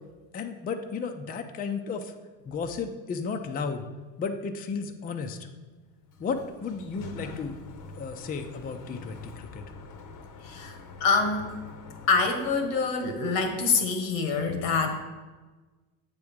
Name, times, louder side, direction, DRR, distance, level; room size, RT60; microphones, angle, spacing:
voice 1, 0.3-2.1 2.5-3.9 4.2-5.4 6.2-7.5 8.0-9.6, left 5 dB, 20° left, 6 dB, 0.4 m, -33 dB
Sliding door, 5.9-13.3, left 4 dB, 40° left, 0.8 m, -45 dB
voice 2, 10.4-11.5 12.1-15.0, left 4 dB, 80° left, 6 dB, 1.3 m, -26 dB
7.6 x 3.7 x 5.9 m, 1.3 s
supercardioid pair, 85°, 50 cm